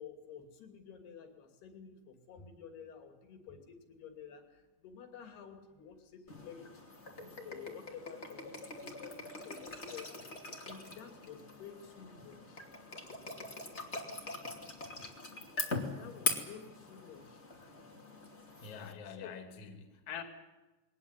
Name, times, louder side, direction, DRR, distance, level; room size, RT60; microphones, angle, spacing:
voice 1, 0.0-6.7 7.2-12.7 15.9-17.4 19.1-19.4, left 7 dB, 70° left, 5 dB, 4.6 m, -51 dB
sound 1, 6.3-18.9, left 2 dB, 20° left, 2.1 m, -42 dB
voice 2, 18.6-20.2, left 7 dB, 50° left, 6 dB, 3.5 m, -45 dB
21.5 x 18.5 x 9.8 m, 1.1 s
omnidirectional pair, 5.0 m